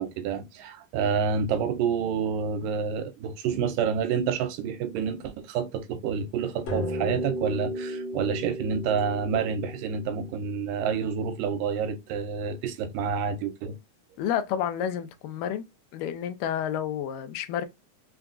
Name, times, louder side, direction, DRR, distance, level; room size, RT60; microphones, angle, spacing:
voice 1, 0.0-13.8, right 6 dB, 90° right, 2.2 m, -28 dB
sound 1, 6.7-11.3, equal, 55° left, 2.0 m, -35 dB
voice 2, 14.2-15.7 15.9-17.7, left 9 dB, 80° left, 2.3 m, -30 dB
5.8 x 2.5 x 2.2 m
omnidirectional pair, 3.8 m